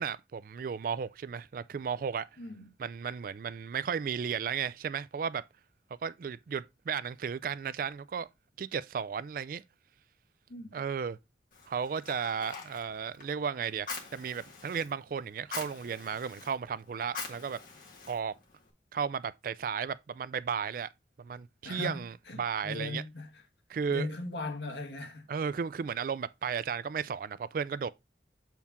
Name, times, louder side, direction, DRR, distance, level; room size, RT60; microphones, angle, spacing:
voice 1, 0.0-2.3 2.8-5.4 6.0-8.3 8.6-9.6 10.7-11.2 11.7-17.6 18.1-18.3 18.9-20.9 21.2-22.1 22.4-23.0 23.7-24.1 25.3-27.9, right 6 dB, 50° right, 0.3 m, -34 dB
voice 2, 2.4-2.7 10.5-10.8 21.6-23.4 23.9-25.3, left 2 dB, 80° left, 1.4 m, -39 dB
Fire, 11.5-18.7, left 5 dB, 50° left, 1.8 m, -45 dB
7.0 x 4.5 x 3.5 m
head